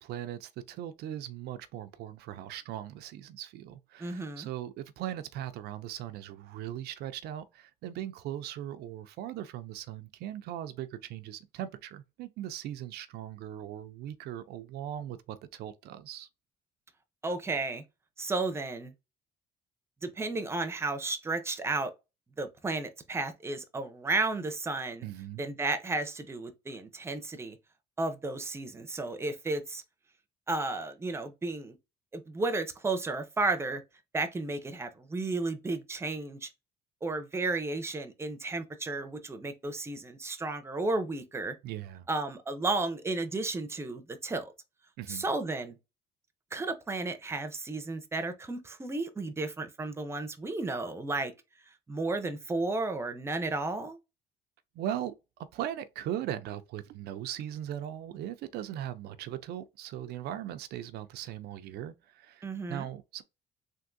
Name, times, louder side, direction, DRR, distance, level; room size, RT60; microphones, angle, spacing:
voice 1, 0.0-16.3 25.0-25.4 41.6-42.1 45.0-45.3 54.8-55.1 55.5-63.2, right 11 dB, 75° right, 0.4 m, -39 dB
voice 2, 4.0-4.5 17.2-17.8 18.2-18.9 20.0-21.9 22.4-25.0 25.4-27.6 28.0-29.8 30.5-31.8 32.1-33.8 34.1-36.5 37.0-41.5 42.1-44.5 45.1-45.7 46.5-51.3 51.9-54.0 62.4-62.9, right 3 dB, 15° right, 0.6 m, -33 dB
3.5 x 2.5 x 2.5 m
cardioid pair, 110°, 17 cm